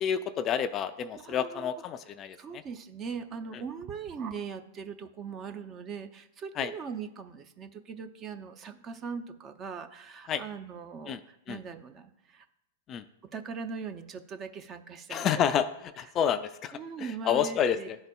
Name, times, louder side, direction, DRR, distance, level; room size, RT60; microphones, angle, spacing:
voice 1, 0.0-2.6 6.6-6.7 10.3-10.4 11.1-11.2 11.5-11.6 12.9-13.0 15.1-15.7 16.0-18.0, left 8 dB, 30° left, 11 dB, 0.3 m, -29 dB
voice 2, 1.1-1.7 2.4-12.5 13.3-15.4 16.0-16.1 16.7-17.9, right 5 dB, 30° right, 8 dB, 0.5 m, -40 dB
11.5 x 3.9 x 2.3 m, 0.83 s
hypercardioid pair, 115°, 0 cm